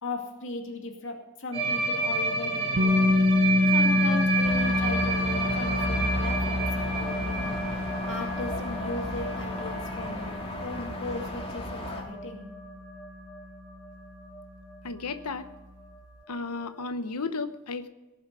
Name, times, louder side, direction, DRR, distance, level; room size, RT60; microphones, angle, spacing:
voice 1, 0.0-3.1 3.7-7.5 8.1-10.3 10.6-12.5, left 2 dB, 60° left, 2 dB, 2.4 m, -37 dB
sound 1, 1.5-13.4 13.7-13.9 14.2-14.4 14.7-14.8 15.1-15.2 16.3-16.4, right 3 dB, 30° right, 6.2 m, -31 dB
sound 2, 2.8-14.6, left 2 dB, 60° right, 1.0 m, -28 dB
sound 3, 4.4-12.0, equal, 25° left, 2.8 m, -34 dB
voice 2, 14.8-15.5 16.3-17.9, left 4 dB, 85° left, 10 dB, 0.9 m, -33 dB
19.0 x 7.2 x 6.9 m, 1.1 s
head